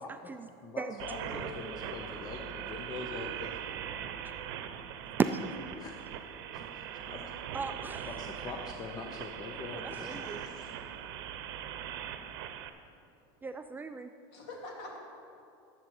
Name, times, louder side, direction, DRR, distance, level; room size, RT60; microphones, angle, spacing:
voice 1, 0.0-3.5 5.8-5.9 6.5-7.3 8.1-10.7, left 4 dB, 30° left, 2 dB, 0.8 m, -44 dB
voice 2, 1.0-3.3 8.7-9.1 14.3-15.0, left 1 dB, 60° left, -1 dB, 2.8 m, -46 dB
sound 1, 1.0-12.7, right 9 dB, 75° right, 0.7 m, -41 dB
voice 3, 7.5-8.1 9.7-9.8 10.1-10.4 13.4-14.1, right 5 dB, 15° right, 8 dB, 0.3 m, -34 dB
13.0 x 7.5 x 4.7 m, 2.5 s
supercardioid pair, 125°, 13 cm